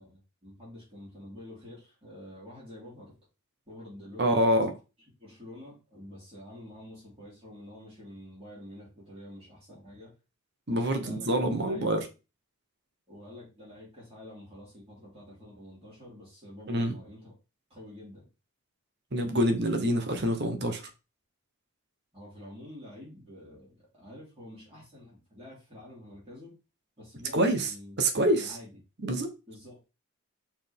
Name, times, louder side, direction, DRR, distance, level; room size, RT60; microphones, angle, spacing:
voice 1, 0.0-3.1 3.7-4.7 5.2-10.1 10.7-11.3 11.6-12.1 13.1-17.4 17.7-18.3 22.1-26.6 27.0-28.0 28.3-28.7 29.5-29.8, left 1 dB, 25° right, 3.5 m, -48 dB
voice 2, 4.2-4.7 10.7-12.0 16.7-17.0 19.1-20.8 27.3-27.7 28.0-28.5 29.0-29.3, right 1 dB, 50° right, 1.1 m, -26 dB
5.8 x 4.5 x 3.6 m
head